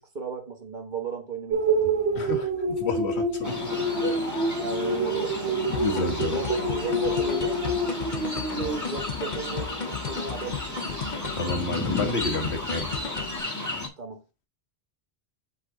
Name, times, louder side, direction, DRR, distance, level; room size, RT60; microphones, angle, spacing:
voice 1, 0.0-2.3 4.6-5.6 6.3-7.6 8.5-11.0 14.0-14.5, right 5 dB, 45° right, 1.7 m, -35 dB
sound 1, 1.5-8.8, right 2 dB, 75° right, 1.3 m, -27 dB
voice 2, 2.1-4.2 5.7-6.4 11.3-12.9, left 3 dB, 75° left, 1.6 m, -30 dB
sound 2, 3.4-13.9, left 2 dB, 15° left, 1.4 m, -33 dB
sound 3, 5.7-13.4, left 6 dB, 45° left, 1.0 m, -35 dB
7.6 x 4.1 x 3.7 m
omnidirectional pair, 1.1 m